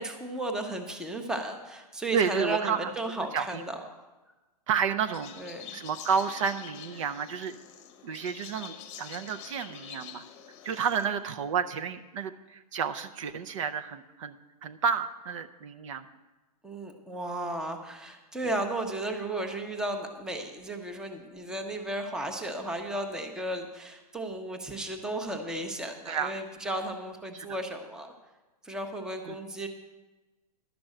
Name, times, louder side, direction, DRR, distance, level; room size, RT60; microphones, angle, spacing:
voice 1, 0.0-3.9 5.4-5.8 16.6-28.1 28.6-29.7, right 1 dB, 5° right, 4 dB, 0.7 m, -34 dB
voice 2, 2.1-2.9 3.2-3.6 4.7-5.3 5.7-7.6 8.0-10.2 10.6-14.4 14.6-16.1 26.1-26.3 27.3-27.5 29.3-29.4, right 7 dB, 50° right, 9 dB, 0.6 m, -31 dB
sound 1, 5.1-11.1, left 9 dB, 30° left, 0.9 m, -46 dB
11.5 x 6.0 x 7.7 m, 1.1 s
hypercardioid pair, 150°, 20 cm